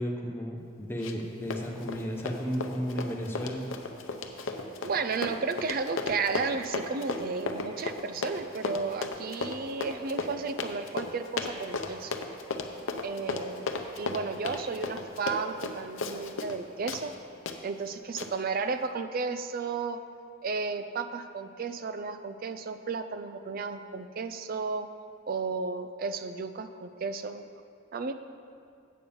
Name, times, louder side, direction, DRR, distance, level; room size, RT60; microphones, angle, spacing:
voice 1, 0.0-3.6, equal, 10° left, 0 dB, 0.8 m, -33 dB
Run, 1.0-1.3 1.5-16.6 16.9-17.0 17.5-17.6 18.2-18.3, left 3 dB, 80° left, 0.7 m, -34 dB
voice 2, 4.8-12.1 13.0-17.1 17.6-20.0 20.4-24.9 25.3-27.5 27.9-28.1, right 4 dB, 45° right, 9 dB, 0.4 m, -33 dB
8.5 x 5.4 x 7.0 m, 2.3 s
head